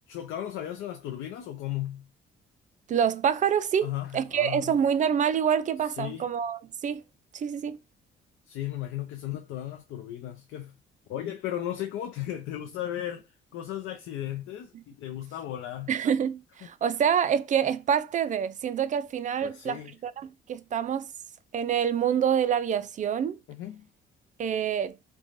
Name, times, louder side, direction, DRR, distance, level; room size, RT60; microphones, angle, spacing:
voice 1, 0.1-2.1 3.8-4.8 6.0-6.3 8.5-10.7 11.1-13.2 13.5-15.9 19.4-19.9 23.5-23.9, left 12 dB, 85° left, 0.5 m, -35 dB
voice 2, 2.9-7.0 7.3-7.8 15.9-21.1 21.5-23.4 24.4-25.0, right 8 dB, 40° right, 0.4 m, -26 dB
3.1 x 2.2 x 2.5 m
cardioid pair, 90°, 20 cm